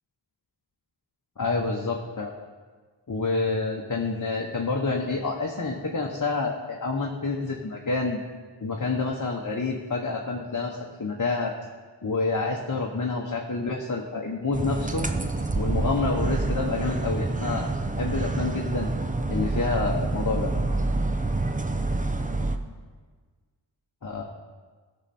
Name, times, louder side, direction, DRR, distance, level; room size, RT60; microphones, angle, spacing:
voice 1, 1.4-2.3 3.1-8.2 8.6-11.5 12.0-15.1 15.5-17.7 18.0-18.9 19.3-20.5 24.0-24.2, left 3 dB, 45° left, -1 dB, 1.1 m, -28 dB
sound 1, 14.5-22.6, right 2 dB, 15° right, 0.6 m, -27 dB
16.0 x 6.5 x 4.3 m, 1.5 s
wide cardioid pair, 70°, 45 cm